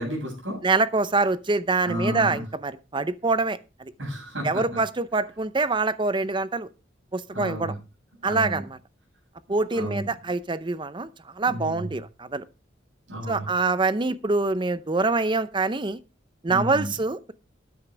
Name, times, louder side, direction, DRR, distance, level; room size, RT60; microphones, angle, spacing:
voice 1, 0.0-0.6 1.9-2.4 4.0-4.8 7.3-7.7 8.2-8.6 9.7-10.1 11.5-11.9 13.1-13.5 16.5-16.9, equal, 80° right, 7.7 m, -32 dB
voice 2, 0.6-3.9 4.4-6.7 7.1-7.7 8.2-8.8 9.5-11.1 11.4-12.4 13.3-16.0 16.4-17.3, right 3 dB, 25° right, 0.6 m, -25 dB
12.5 x 9.6 x 3.3 m
head